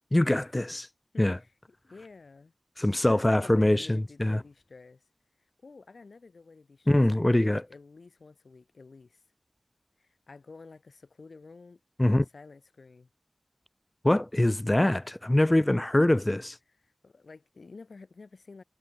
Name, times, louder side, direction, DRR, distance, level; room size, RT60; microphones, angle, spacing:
voice 1, 0.1-0.9 1.2-1.4 2.8-4.4 6.9-7.6 12.0-12.2 14.0-16.6, left 1 dB, 25° left, 0.9 m, -23 dB
voice 2, 1.1-1.5 1.8-2.5 3.1-5.1 5.6-9.2 10.0-13.1 15.4-15.5 16.8-18.6, left 4 dB, 90° left, 3.5 m, -50 dB
wide cardioid pair, 55°, 0 cm